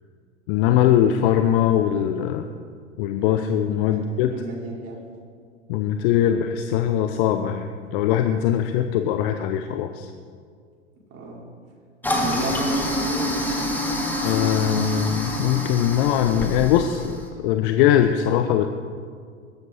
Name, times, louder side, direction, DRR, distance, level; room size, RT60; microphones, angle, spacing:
voice 1, 0.5-2.5 3.0-4.3 5.7-10.1 14.2-18.7, left 10 dB, 50° left, 7 dB, 1.0 m, -21 dB
voice 2, 4.3-5.0 11.1-11.4 12.2-13.4, right 2 dB, 40° right, -2 dB, 5.0 m, -33 dB
Toilet flush, 12.0-17.2, left 1 dB, 5° left, 3.0 m, -26 dB
22.5 x 13.0 x 4.4 m, 2.1 s
figure-of-eight pair, 85°, 36 cm